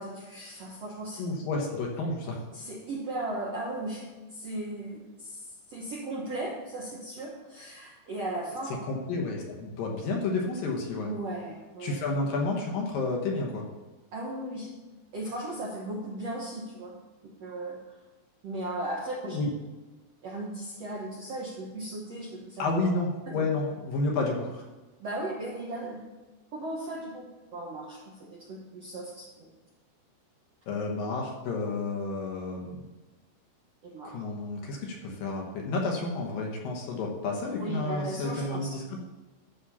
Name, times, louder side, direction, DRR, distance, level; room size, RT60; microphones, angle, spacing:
voice 1, 0.0-1.2 2.5-4.0 4.3-8.7 11.0-11.9 14.1-14.7 15.1-16.9 17.2-17.8 18.4-19.4 20.2-22.7 23.3-23.4 25.0-26.0 26.5-29.5 33.8-34.2 37.6-38.8, right 1 dB, 65° right, -4 dB, 1.6 m, -37 dB
voice 2, 1.2-2.4 8.9-11.1 11.8-13.6 19.3-19.5 22.6-24.6 30.7-32.9 34.0-39.0, left 3 dB, 65° left, 0 dB, 2.6 m, -31 dB
12.0 x 4.3 x 7.0 m, 1.2 s
omnidirectional pair, 4.9 m